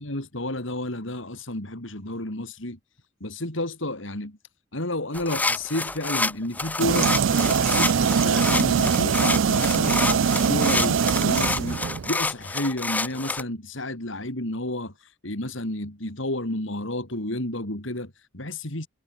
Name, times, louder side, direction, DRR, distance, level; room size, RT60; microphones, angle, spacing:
voice 1, 0.0-2.8 3.2-4.4 4.7-7.1 7.4-18.9, left 1 dB, 75° left, 4.2 m, -31 dB
sound 1, 5.1-13.4, left 3 dB, 10° left, 0.4 m, -28 dB
sound 2, 6.8-12.1, right 6 dB, 75° right, 0.4 m, -22 dB
head